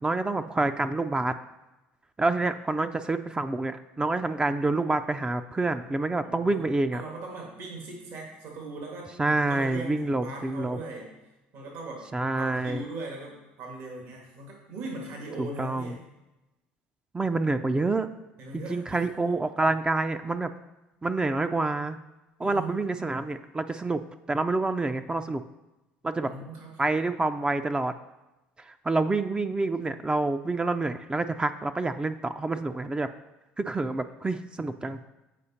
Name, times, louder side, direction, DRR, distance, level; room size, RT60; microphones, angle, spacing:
voice 1, 0.0-1.3 2.2-7.0 9.2-10.8 12.1-12.8 15.4-15.9 17.1-18.1 18.7-20.5 21.0-22.0 22.4-24.0 24.3-25.4 26.0-26.3 26.8-27.9 28.9-33.1 33.6-35.0, right 2 dB, 20° right, 9 dB, 0.4 m, -27 dB
voice 2, 6.2-11.1 11.5-12.1 12.3-16.0 18.4-19.3 22.4-23.0 26.2-26.9, right 2 dB, 65° right, -1 dB, 1.9 m, -40 dB
8.3 x 4.9 x 4.2 m, 1.0 s
hypercardioid pair, 70°, 5 cm